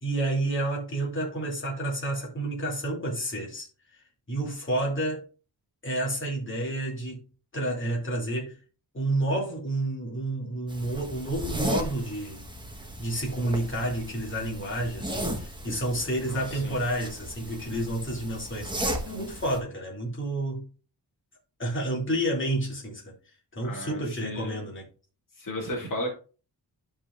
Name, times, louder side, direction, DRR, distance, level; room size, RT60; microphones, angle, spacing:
voice 1, 0.0-3.7 3.9-5.3 5.8-7.2 7.5-8.6 8.9-12.4 13.0-20.7 21.6-23.1 23.5-24.9, right 1 dB, 30° left, 2.7 m, -30 dB
sound 1, 10.7-19.6, right 1 dB, 10° right, 1.3 m, -36 dB
voice 2, 16.3-16.8 23.6-24.7 25.4-26.2, left 1 dB, 55° left, 2.3 m, -35 dB
13.0 x 5.0 x 2.5 m
wide cardioid pair, 160°, 38 cm